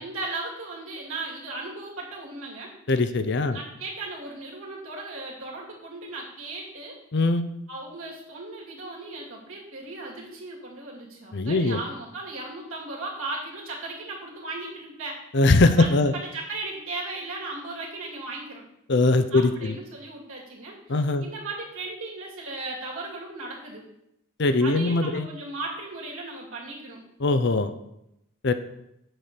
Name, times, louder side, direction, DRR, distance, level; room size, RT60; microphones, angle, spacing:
voice 1, 0.0-2.7 3.5-7.0 7.7-15.2 15.8-18.6 19.3-23.8 24.6-27.0, right 2 dB, 70° right, -2 dB, 2.5 m, -36 dB
voice 2, 2.9-3.6 7.1-7.4 11.3-11.8 15.3-16.1 18.9-19.7 20.9-21.2 24.4-25.3 27.2-27.7 28.4-28.5, left 2 dB, 55° left, 10 dB, 0.6 m, -21 dB
7.8 x 4.4 x 6.8 m, 0.82 s
head